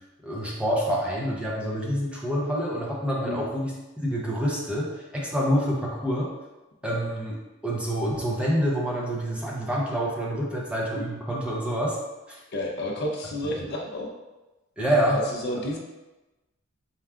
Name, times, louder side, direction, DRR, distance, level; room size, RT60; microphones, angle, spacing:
voice 1, 0.2-3.7 4.0-4.9 5.1-6.3 6.8-7.3 7.6-12.0 12.3-12.4 14.8-15.2, equal, 5° right, -5 dB, 0.7 m, -27 dB
voice 2, 12.5-14.1 15.1-15.8, left 1 dB, 55° left, 0 dB, 0.6 m, -31 dB
4.4 x 2.3 x 3.6 m, 1.1 s
head